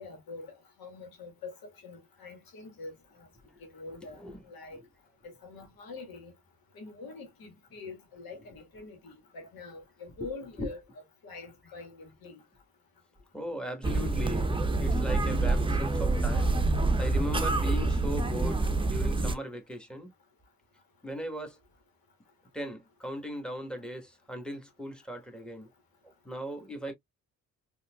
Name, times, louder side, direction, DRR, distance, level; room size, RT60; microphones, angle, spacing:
voice 1, 0.0-1.5 1.8-2.9 3.2-3.3 3.6-4.2 4.5-4.8 5.2-6.3 6.8-10.8 11.2-12.4, left 3 dB, 85° left, 1.7 m, -45 dB
voice 2, 4.0-4.4 4.7-4.9 10.2-10.3 10.6-10.7 13.3-16.6 17.0-20.1 21.0-21.6 22.5-25.7 26.0-26.9, equal, 5° left, 1.5 m, -38 dB
sound 1, 13.8-19.3, right 2 dB, 15° right, 0.7 m, -27 dB
4.2 x 3.0 x 2.3 m
supercardioid pair, 60°, 34 cm